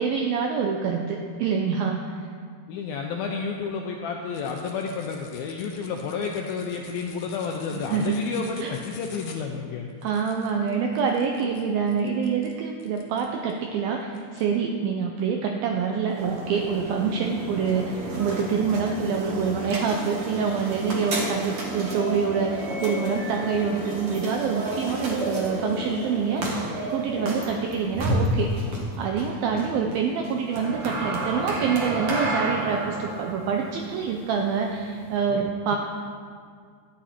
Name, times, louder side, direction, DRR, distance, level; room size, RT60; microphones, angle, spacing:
voice 1, 0.0-2.2 7.7-8.3 8.6-8.8 10.0-28.7 29.0-35.8, right 6 dB, 80° right, 2 dB, 2.1 m, -26 dB
voice 2, 2.7-9.9 29.5-29.7 35.3-35.8, left 5 dB, 80° left, 1 dB, 2.1 m, -31 dB
sound 1, 4.3-13.6 14.1-14.5, left 5 dB, 65° left, 2.1 m, -48 dB
sound 2, 16.1-35.2, right 1 dB, 60° right, 1.4 m, -31 dB
14.5 x 10.0 x 4.3 m, 2.2 s
omnidirectional pair, 5.1 m